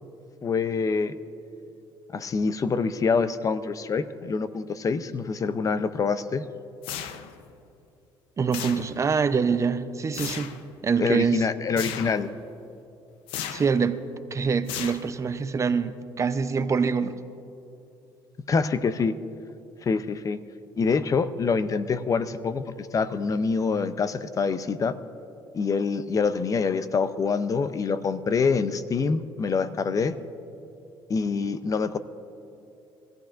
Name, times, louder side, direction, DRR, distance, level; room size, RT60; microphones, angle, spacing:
voice 1, 0.4-1.1 2.1-6.4 11.0-12.3 18.5-19.2 19.8-20.4 20.8-25.0 25.5-30.2 31.1-32.0, left 5 dB, 40° left, 13 dB, 0.6 m, -25 dB
sound 1, 6.8-7.5 8.5-9.2 10.1-10.6 11.8-12.3 13.3-13.8 14.7-15.4, left 9 dB, 85° left, 0.7 m, -35 dB
voice 2, 8.4-10.5 10.8-11.5 13.5-14.0 14.3-17.2, right 5 dB, 35° right, 11 dB, 0.7 m, -25 dB
23.0 x 15.0 x 2.5 m, 2.7 s
supercardioid pair, 85°, 9 cm